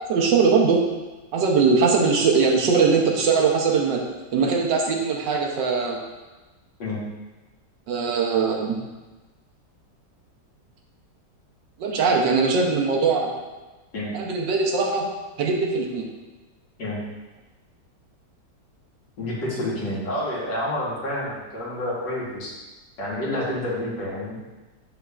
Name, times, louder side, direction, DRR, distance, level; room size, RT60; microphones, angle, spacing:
voice 1, 0.1-0.8 1.3-4.0 4.3-6.0 7.9-8.8 11.8-13.3 14.1-15.1 15.4-16.0, right 5 dB, 90° right, 1 dB, 1.5 m, -21 dB
voice 2, 19.2-22.5 23.0-24.5, left 1 dB, 80° left, -6 dB, 2.2 m, -29 dB
6.8 x 6.2 x 2.4 m, 1.2 s
omnidirectional pair, 1.9 m